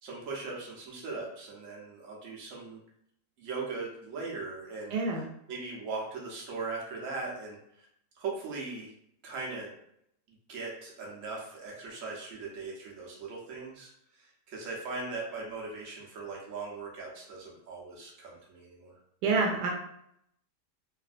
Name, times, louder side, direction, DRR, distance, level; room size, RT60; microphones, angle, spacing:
voice 1, 0.0-2.8 3.4-4.9 5.5-7.9 8.2-8.9 9.2-9.7 10.5-18.9, right 3 dB, 55° right, -3 dB, 1.2 m, -39 dB
voice 2, 4.9-5.3 19.2-19.7, right 3 dB, 85° right, 0 dB, 1.2 m, -27 dB
3.2 x 2.6 x 2.5 m, 0.74 s
omnidirectional pair, 1.7 m